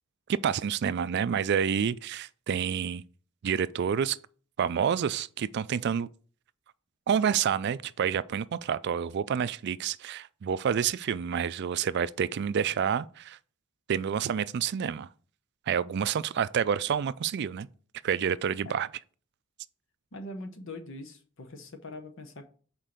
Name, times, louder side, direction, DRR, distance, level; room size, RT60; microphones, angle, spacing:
voice 1, 0.3-3.0 3.4-4.2 4.6-6.1 7.1-13.4 13.9-15.1 15.7-17.7 18.0-18.9, right 7 dB, 55° right, 0.3 m, -28 dB
voice 2, 20.1-22.5, left 1 dB, 65° left, 1.0 m, -42 dB
5.9 x 4.5 x 5.0 m
head